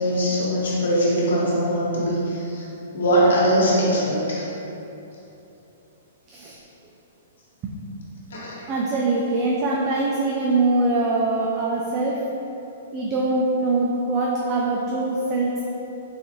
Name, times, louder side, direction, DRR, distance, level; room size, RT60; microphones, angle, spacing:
voice 1, 0.0-2.6 2.9-4.4 8.3-8.5, equal, 85° left, -6 dB, 1.1 m, -21 dB
voice 2, 8.7-12.3 12.9-15.7, right 2 dB, 25° right, -4 dB, 0.3 m, -23 dB
3.9 x 2.9 x 2.6 m, 2.9 s
hypercardioid pair, 155°, 0 cm